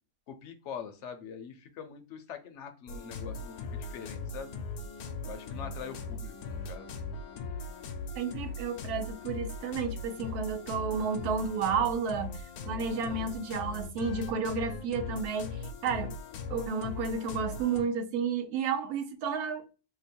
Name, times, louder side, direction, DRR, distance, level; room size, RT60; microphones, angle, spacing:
voice 1, 0.3-4.5 5.2-6.9 12.9-13.3, left 6 dB, 65° left, 0.8 m, -44 dB
sound 1, 2.9-17.8, left 3 dB, 80° left, 1.1 m, -39 dB
voice 2, 8.1-16.1 16.5-19.6, right 5 dB, 85° right, 1.1 m, -32 dB
3.0 x 2.1 x 4.1 m
omnidirectional pair, 1.6 m